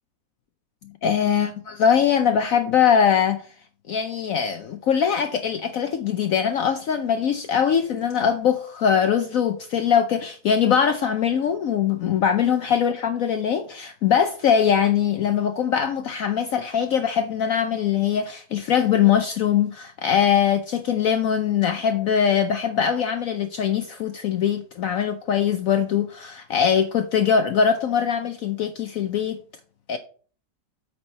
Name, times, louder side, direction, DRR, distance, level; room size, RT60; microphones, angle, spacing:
voice 1, 1.0-3.4 3.9-29.4 29.9-30.0, left 8 dB, 65° left, 1.0 m, -22 dB
8.6 x 4.5 x 5.3 m
omnidirectional pair, 1.8 m